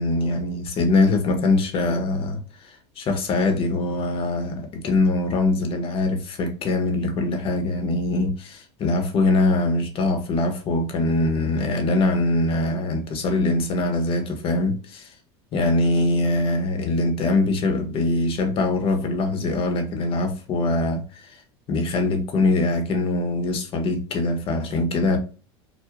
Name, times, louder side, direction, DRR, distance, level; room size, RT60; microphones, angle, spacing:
voice 1, 0.0-2.4 2.6-15.1 15.5-21.3 21.7-25.2, left 2 dB, 40° left, 0.7 m, -23 dB
2.3 x 2.0 x 2.8 m
supercardioid pair, 110°, 14 cm